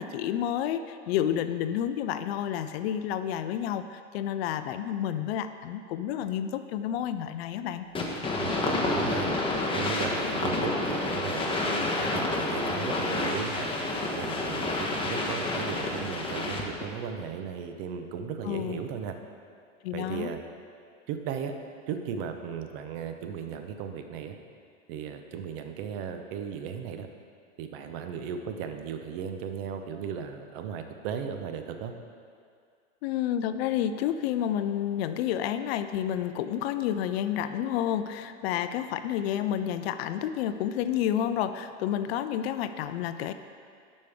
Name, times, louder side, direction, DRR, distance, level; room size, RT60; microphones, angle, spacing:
voice 1, 0.0-7.9 18.4-18.8 19.8-20.3 33.0-43.3, left 10 dB, 55° left, 11 dB, 0.5 m, -30 dB
sound 1, 8.0-16.9, left 2 dB, 15° left, 1.0 m, -29 dB
voice 2, 8.3-9.3 9.7-13.7 14.1-19.1 19.9-20.4 21.1-21.5 21.9-24.4 24.9-27.1 27.6-31.9, right 7 dB, 50° right, 6 dB, 0.8 m, -36 dB
11.0 x 5.3 x 3.6 m, 2.2 s
hypercardioid pair, 105°, 37 cm